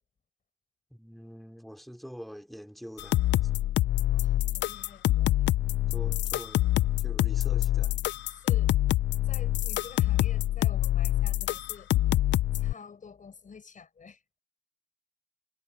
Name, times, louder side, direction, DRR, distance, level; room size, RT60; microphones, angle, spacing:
voice 1, 0.9-3.2 5.9-8.0, equal, ahead, 2.9 m, -45 dB
sound 1, 3.0-12.7, left 14 dB, 65° left, 0.5 m, -26 dB
voice 2, 4.1-5.3 8.3-8.7 9.2-11.9 12.5-14.2, left 6 dB, 40° left, 6.5 m, -49 dB
cardioid pair, 90°, 20 cm